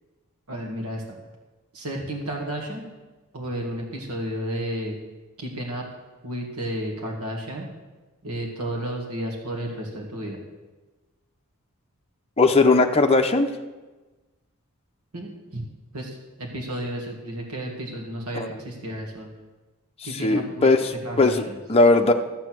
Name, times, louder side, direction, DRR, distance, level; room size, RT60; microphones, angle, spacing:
voice 1, 0.5-1.2 1.7-2.9 3.3-5.0 5.4-5.8 6.2-7.7 8.2-10.4 15.1-15.6 15.9-19.3 20.0-20.7 21.0-21.6, right 1 dB, 80° right, -1 dB, 2.0 m, -32 dB
voice 2, 12.4-13.5 18.3-18.5 20.2-20.8 21.2-21.4 21.7-22.1, left 3 dB, 25° left, 4 dB, 0.7 m, -18 dB
12.5 x 8.3 x 6.1 m, 1.2 s
head